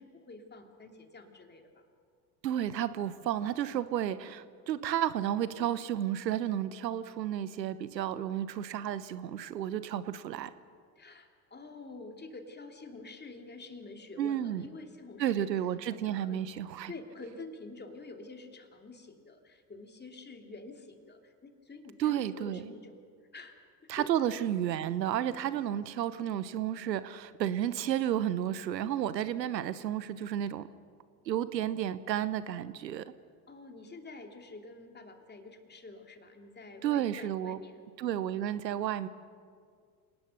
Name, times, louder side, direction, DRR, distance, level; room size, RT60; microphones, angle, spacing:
voice 1, 0.0-1.9 11.0-15.6 15.9-16.5 16.9-23.0 23.3-23.6 23.8-24.1 33.5-38.2, left 3 dB, 20° left, 4 dB, 2.9 m, -48 dB
voice 2, 2.4-10.5 14.2-14.6 15.2-16.9 22.0-22.7 23.9-30.7 31.3-33.0 36.8-37.6 38.0-39.1, right 11 dB, 80° right, 16 dB, 1.0 m, -32 dB
28.0 x 19.0 x 6.6 m, 2.1 s
figure-of-eight pair, 65°, 50 cm